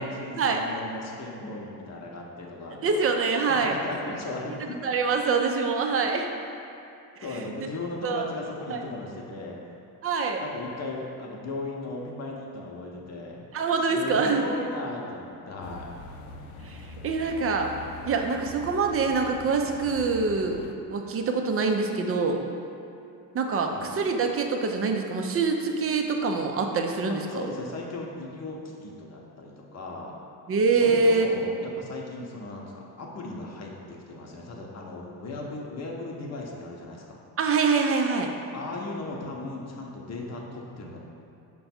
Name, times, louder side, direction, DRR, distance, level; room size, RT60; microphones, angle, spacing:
voice 1, 0.0-3.0 3.5-4.8 7.2-9.6 10.4-13.5 13.9-15.9 17.0-17.1 23.7-23.9 27.1-30.1 30.7-37.2 38.5-41.0, left 2 dB, 35° left, -1 dB, 0.8 m, -37 dB
voice 2, 2.8-3.8 4.8-6.2 8.0-8.3 8.7-8.8 10.0-10.4 13.5-14.4 16.6-16.8 17.0-17.7 18.1-20.6 20.9-22.4 23.3-27.4 30.5-31.3 37.4-38.3, right 4 dB, 30° right, 3 dB, 0.4 m, -25 dB
sound 1, 15.6-20.7, left 2 dB, 75° left, 0.5 m, -43 dB
5.5 x 2.3 x 4.2 m, 2.7 s
hypercardioid pair, 65°, 49 cm